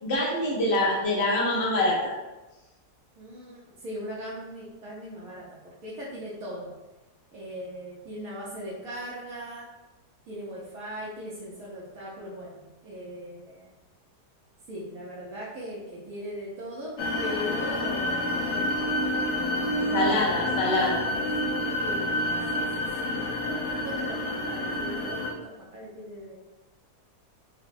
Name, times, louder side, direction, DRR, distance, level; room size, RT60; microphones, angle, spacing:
voice 1, 0.0-2.0 19.9-21.0, left 1 dB, 55° left, -4 dB, 0.7 m, -25 dB
voice 2, 3.2-6.7 7.3-9.7 10.3-13.7 14.7-16.9 17.2-18.8 19.7-21.2 21.5-22.3 22.5-26.4, equal, 70° right, -7 dB, 1.1 m, -39 dB
sound 1, 17.0-25.3, left 1 dB, 75° left, 1.1 m, -28 dB
3.9 x 2.1 x 2.5 m, 1.1 s
omnidirectional pair, 1.7 m